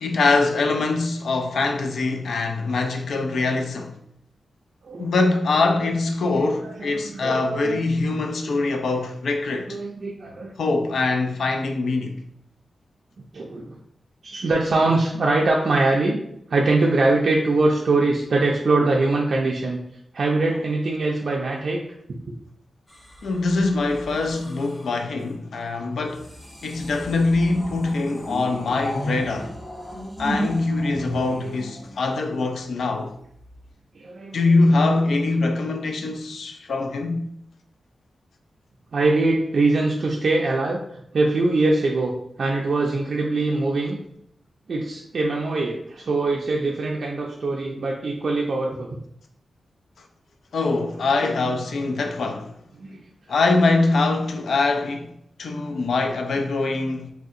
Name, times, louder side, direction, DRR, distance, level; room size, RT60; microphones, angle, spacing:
voice 1, 0.0-4.0 5.0-9.8 10.6-12.2 23.2-26.3 26.6-29.5 30.2-33.1 34.3-37.2 50.5-52.5 53.3-57.1, left 3 dB, 80° left, 0.3 m, -23 dB
voice 2, 6.9-7.8 9.7-10.5 13.3-13.8 14.2-16.2 16.5-19.8 20.1-21.8 28.1-28.2 31.2-31.5 34.0-34.5 38.9-40.8 41.1-42.1 42.4-44.0 44.7-48.9 52.8-53.0, right 2 dB, 60° right, 0.3 m, -22 dB
sound 1, 22.9-25.0 26.1-32.5 33.4-33.7, equal, 25° left, 0.8 m, -34 dB
3.2 x 2.7 x 2.5 m
wide cardioid pair, 125°, 0 cm